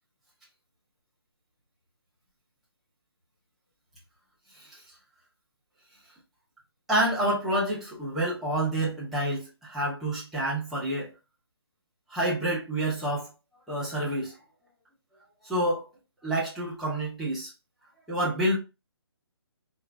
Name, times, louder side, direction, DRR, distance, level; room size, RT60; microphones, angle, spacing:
voice 1, 6.9-11.1 12.1-13.3 13.7-14.3 15.4-15.8 16.2-17.5 18.1-18.6, right 1 dB, ahead, 0.7 m, -28 dB
3.6 x 2.5 x 3.3 m
hypercardioid pair, 170°, 14 cm